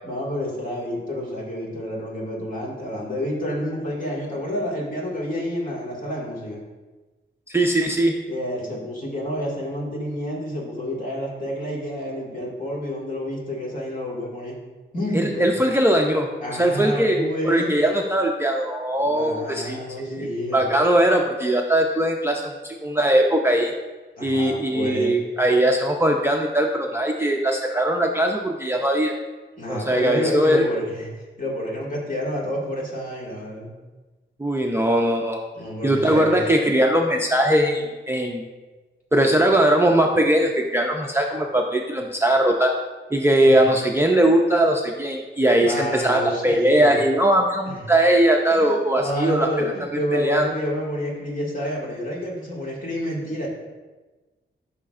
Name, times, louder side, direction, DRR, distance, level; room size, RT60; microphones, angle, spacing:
voice 1, 0.0-6.6 8.3-14.6 14.9-15.5 16.4-17.8 19.0-20.6 24.2-25.1 29.6-31.1 31.4-33.7 35.5-36.4 43.4-43.6 45.6-46.9 47.7-47.8 48.6-53.5, left 1 dB, 40° left, -3 dB, 1.9 m, -29 dB
voice 2, 7.5-8.2 15.1-23.7 24.2-29.1 29.7-30.7 34.4-35.4 35.8-38.5 39.1-42.7 43.1-49.7 50.1-50.5, right 1 dB, 10° right, 0 dB, 0.4 m, -20 dB
12.5 x 5.6 x 2.4 m, 1.2 s
wide cardioid pair, 180°, 20 cm